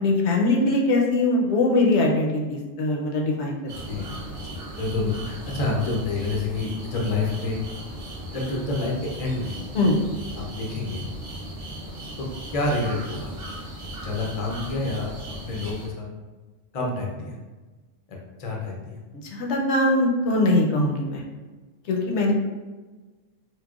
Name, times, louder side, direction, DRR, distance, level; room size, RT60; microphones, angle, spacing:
voice 1, 0.0-4.1 9.7-10.0 19.3-21.2 21.9-22.3, left 2 dB, 70° left, -1 dB, 0.8 m, -22 dB
sound 1, 3.7-15.9, right 1 dB, 40° right, 1.0 m, -37 dB
voice 2, 4.8-7.6 8.3-9.5 10.4-11.0 12.2-13.3 14.0-15.1 15.4-16.1 16.7-17.4 18.1-19.0, left 3 dB, 50° left, -2 dB, 0.4 m, -28 dB
4.6 x 2.1 x 2.3 m, 1.3 s
omnidirectional pair, 1.3 m